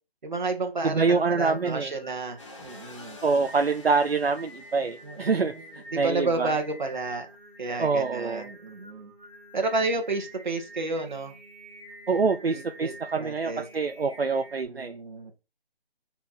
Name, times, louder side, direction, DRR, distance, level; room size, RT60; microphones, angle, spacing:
voice 1, 0.2-3.2 5.0-7.3 7.6-9.1 9.5-11.3 12.5-13.7 14.6-15.3, right 3 dB, 50° right, 2.0 m, -31 dB
Singing, 0.6-14.6, right 1 dB, 10° right, 1.4 m, -48 dB
voice 2, 0.8-1.9 3.2-5.5 6.0-6.5 7.8-8.5 12.1-14.9, right 4 dB, 75° right, 0.9 m, -25 dB
sound 1, 2.4-5.9, left 3 dB, 30° left, 2.2 m, -49 dB
6.0 x 5.1 x 4.4 m
figure-of-eight pair, 170°, 31 cm